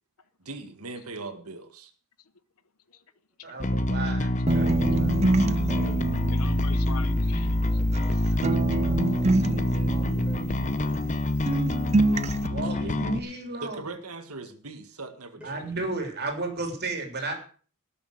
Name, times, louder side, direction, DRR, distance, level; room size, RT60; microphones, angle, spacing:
voice 1, 0.4-1.9 12.6-13.0 13.6-15.4, right 3 dB, 80° right, 1.8 m, -40 dB
voice 2, 3.4-4.3 4.5-5.7 7.5-8.0 8.3-8.4 12.5-13.8 15.4-17.3, right 2 dB, 50° right, 3.4 m, -34 dB
Bass guitar, 3.6-13.2, left 1 dB, 35° left, 0.8 m, -26 dB
voice 3, 4.5-4.9 5.7-6.1 7.8-8.2 8.5-12.0 15.3-15.6, right 1 dB, 5° right, 4.8 m, -49 dB
sound 1, 4.5-8.1 8.4-11.2 11.5-12.5, right 2 dB, 30° right, 0.6 m, -27 dB
voice 4, 6.3-7.8, left 7 dB, 80° left, 1.0 m, -43 dB
18.5 x 6.8 x 6.4 m
head